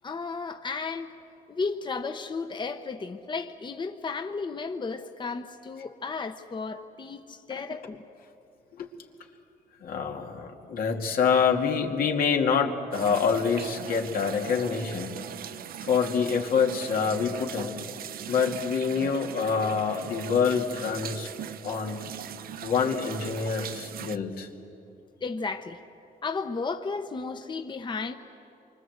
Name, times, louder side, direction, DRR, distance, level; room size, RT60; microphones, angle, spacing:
voice 1, 0.0-1.1 1.5-8.0 25.2-25.8 26.2-28.1, left 4 dB, 30° left, 7 dB, 0.9 m, -34 dB
voice 2, 9.8-15.1 15.8-17.8 18.3-21.3 21.6-22.1 22.6-24.5, left 6 dB, 80° left, 2 dB, 2.4 m, -26 dB
sound 1, 12.9-24.2, right 9 dB, 75° right, 0.8 m, -40 dB
27.0 x 24.0 x 8.0 m, 2.7 s
cardioid pair, 100°, 15 cm